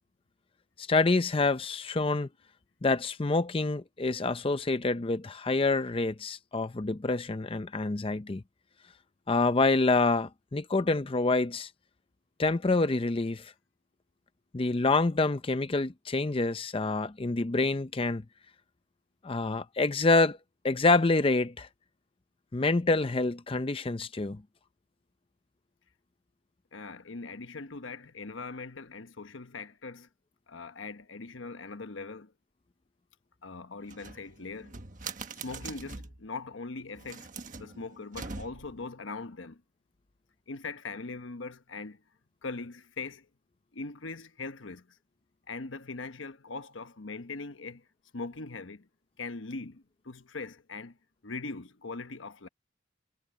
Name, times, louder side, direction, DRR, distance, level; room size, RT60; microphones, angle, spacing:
voice 1, 0.8-2.3 2.8-8.4 9.3-11.7 12.4-13.5 14.5-18.2 19.2-20.4 20.6-21.7 22.5-24.4, left 3 dB, 30° left, 0.6 m, -27 dB
voice 2, 26.7-30.1 30.5-32.3 33.4-34.8 35.4-37.3 37.6-39.6 40.5-42.0 42.4-43.3 43.7-45.0 45.5-47.8 48.1-48.9 49.2-51.0 51.2-52.5, left 3 dB, 85° left, 1.1 m, -41 dB
sound 1, 33.8-36.2 36.9-38.8, right 4 dB, 45° right, 1.4 m, -43 dB
head